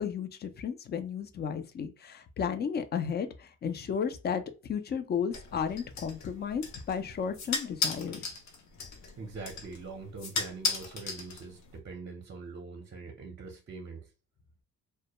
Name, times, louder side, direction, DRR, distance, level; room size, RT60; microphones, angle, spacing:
voice 1, 0.0-8.3, left 7 dB, 35° left, 0.4 m, -33 dB
sound 1, 5.3-11.8, left 4 dB, 65° left, 0.7 m, -37 dB
voice 2, 9.2-14.1, right 4 dB, 35° right, 0.6 m, -43 dB
2.2 x 2.0 x 2.9 m
cardioid pair, 90°, 30 cm